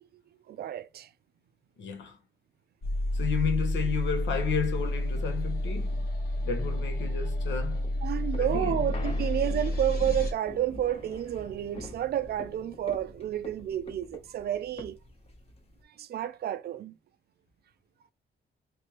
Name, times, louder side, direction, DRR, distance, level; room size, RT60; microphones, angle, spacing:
voice 1, 0.5-1.1 8.0-15.0 15.9-16.9, right 11 dB, 55° right, 0.4 m, -30 dB
voice 2, 1.8-2.2 3.1-6.1 6.4-7.9 8.4-8.8, left 6 dB, 80° left, 0.9 m, -32 dB
sound 1, 2.8-10.3, left 1 dB, 55° left, 1.1 m, -30 dB
sound 2, 7.7-15.8, left 1 dB, 35° left, 0.9 m, -45 dB
3.3 x 3.2 x 3.0 m
cardioid pair, 115°, 19 cm